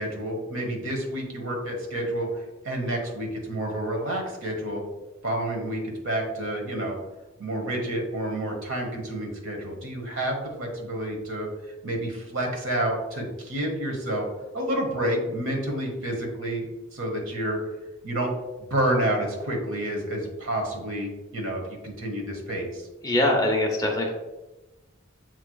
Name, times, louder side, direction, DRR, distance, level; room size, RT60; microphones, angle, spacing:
voice 1, 0.0-2.3 2.6-4.8 5.2-7.0 7.4-11.5 11.8-14.3 14.5-17.6 18.0-18.3 18.7-22.9, right 1 dB, 80° right, 1 dB, 1.1 m, -29 dB
voice 2, 23.0-24.1, left 1 dB, 20° left, 0 dB, 0.7 m, -23 dB
7.5 x 3.0 x 2.3 m, 1.1 s
head